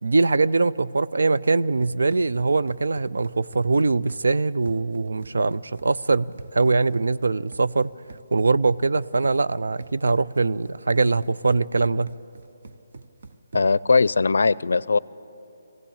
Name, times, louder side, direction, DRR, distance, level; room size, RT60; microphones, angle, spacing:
voice 1, 0.0-7.9 8.3-12.1, right 3 dB, 85° right, 15 dB, 0.5 m, -22 dB
Run, 1.7-13.9, right 3 dB, 45° right, 0.7 m, -46 dB
voice 2, 13.5-15.0, left 4 dB, 70° left, 21 dB, 0.4 m, -19 dB
22.0 x 16.5 x 8.7 m, 3.0 s
hypercardioid pair, 175°, 0 cm